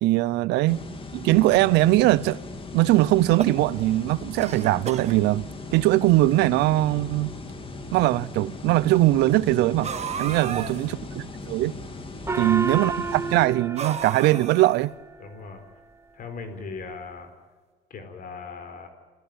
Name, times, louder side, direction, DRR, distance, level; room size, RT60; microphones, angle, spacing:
voice 1, 0.0-0.9 1.1-2.4 2.7-7.3 7.9-9.9 10.2-11.7 12.3-14.9, right 17 dB, 90° right, 0.6 m, -21 dB
sound 1, 0.7-13.5, left 3 dB, 30° left, 2.9 m, -38 dB
sound 2, 3.1-4.0 4.4-5.2 6.0-6.1 6.3-6.4 7.4-7.5 9.8-10.9 13.8-14.9, right 7 dB, 40° right, 1.6 m, -33 dB
voice 2, 10.3-10.7 12.2-12.5 15.2-15.6 16.1-17.3 17.9-18.9, left 4 dB, 55° left, 4.2 m, -39 dB
Gong, 12.3-15.2, right 3 dB, 15° right, 1.0 m, -31 dB
28.0 x 14.0 x 8.8 m
cardioid pair, 110°, 17 cm